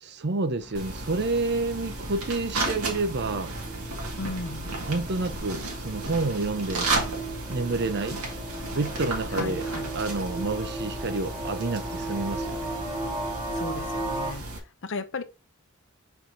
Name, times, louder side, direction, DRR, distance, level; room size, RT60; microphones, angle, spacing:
voice 1, 0.0-3.5 4.9-6.9 7.5-8.2 8.7-9.7 9.9-12.7, right 3 dB, 50° right, 0.7 m, -29 dB
sound 1, 0.6-13.4, left 1 dB, 5° left, 0.9 m, -50 dB
sound 2, 0.7-14.6, right 2 dB, 85° right, 2.1 m, -34 dB
sound 3, 2.3-14.3, right 2 dB, 15° right, 1.1 m, -36 dB
voice 2, 4.2-4.7 9.3-9.9 13.5-14.5 14.8-15.2, left 3 dB, 55° left, 0.7 m, -35 dB
5.4 x 4.6 x 3.8 m
head